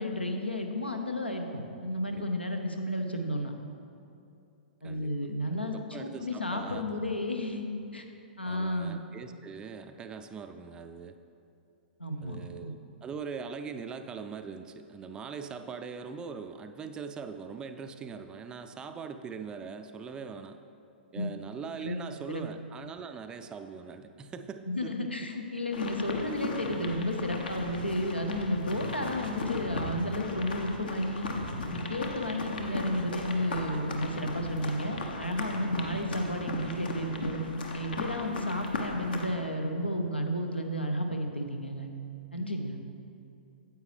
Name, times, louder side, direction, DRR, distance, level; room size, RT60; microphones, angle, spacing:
voice 1, 0.0-3.5 4.8-7.7 7.9-8.1 8.4-9.0 12.0-12.4 12.6-12.7 21.1-21.3 21.8-22.0 22.3-22.4 24.8-31.3 31.7-37.4 37.7-41.9 42.3-42.8, left 1 dB, 85° left, 4 dB, 0.8 m, -32 dB
voice 2, 5.6-6.9 8.4-11.2 12.2-20.6 21.1-25.1 32.6-33.0, right 5 dB, 15° right, 8 dB, 0.3 m, -42 dB
sound 1, 25.7-39.3, left 2 dB, 60° left, 0.9 m, -37 dB
9.3 x 8.1 x 3.3 m, 2.6 s
figure-of-eight pair, 110°, 6 cm